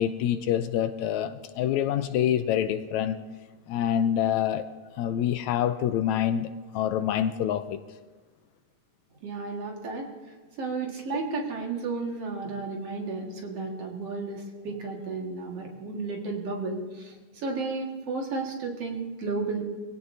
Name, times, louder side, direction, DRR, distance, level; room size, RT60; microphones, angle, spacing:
voice 1, 0.0-3.2 3.7-4.6 5.0-7.8, left 10 dB, 80° left, 10 dB, 1.8 m, -26 dB
voice 2, 9.2-19.6, right 3 dB, 55° right, 0 dB, 2.7 m, -33 dB
23.0 x 16.5 x 2.7 m, 1.3 s
omnidirectional pair, 3.4 m